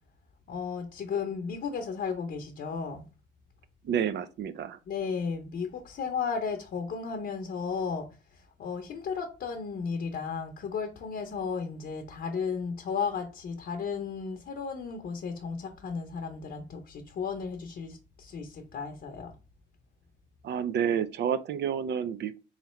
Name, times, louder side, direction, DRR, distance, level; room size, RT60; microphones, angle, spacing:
voice 1, 0.5-3.0 4.9-19.3, left 5 dB, 55° left, 0.7 m, -34 dB
voice 2, 3.8-4.8 20.4-22.4, right 8 dB, 60° right, 0.5 m, -29 dB
3.6 x 3.2 x 3.1 m
cardioid pair, 90°, 20 cm